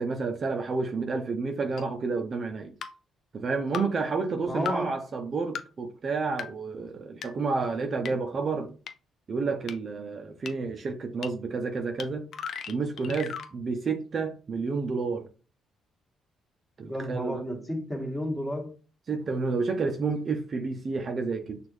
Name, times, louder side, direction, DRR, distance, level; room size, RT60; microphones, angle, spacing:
voice 1, 0.0-2.7 3.3-8.7 9.3-12.3 12.7-15.3 16.8-17.4 19.1-21.6, right 4 dB, 45° right, 0.6 m, -30 dB
sound 1, 1.8-1.9 2.8-2.9 3.7-3.8 4.7-4.8 5.5-5.6 6.4-6.5 7.2-7.3 8.0-8.1 8.9-9.0 9.7-9.8 10.5-10.6 11.2-11.3 12.0-12.1 12.3-13.5, left 7 dB, 65° left, 0.5 m, -35 dB
voice 2, 4.4-5.0 5.3-5.4 16.9-18.7, equal, 5° left, 1.5 m, -32 dB
6.1 x 2.5 x 3.1 m
cardioid pair, 90°, 0 cm